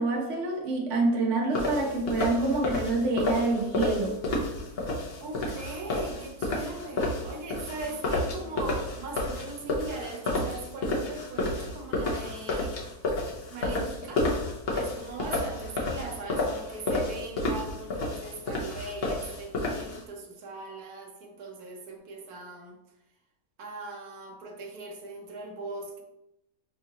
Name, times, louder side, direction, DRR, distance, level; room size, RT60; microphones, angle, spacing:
voice 1, 0.0-4.2, right 2 dB, 60° right, 1.0 m, -27 dB
sound 1, 1.5-20.0, left 2 dB, 45° left, 0.9 m, -31 dB
voice 2, 5.2-12.8 13.5-14.3 14.7-22.7 23.6-26.0, right 3 dB, 80° right, 1.3 m, -40 dB
5.3 x 2.4 x 2.9 m
omnidirectional pair, 1.6 m